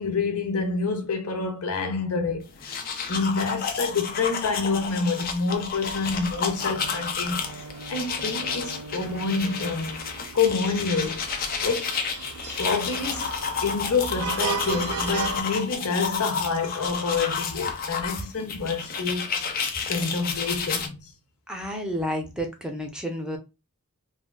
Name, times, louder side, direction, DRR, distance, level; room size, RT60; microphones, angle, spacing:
voice 1, 0.0-7.5 7.9-10.0 10.3-11.3 11.6-12.0 12.6-13.3 13.6-19.3 19.9-21.1, left 4 dB, 80° left, 0.8 m, -27 dB
sound 1, 2.5-20.9, left 6 dB, 40° left, 0.5 m, -31 dB
sound 2, 6.0-15.4, right 6 dB, 85° right, 0.4 m, -36 dB
voice 2, 21.5-23.4, equal, 5° right, 0.5 m, -31 dB
3.4 x 2.2 x 2.2 m
head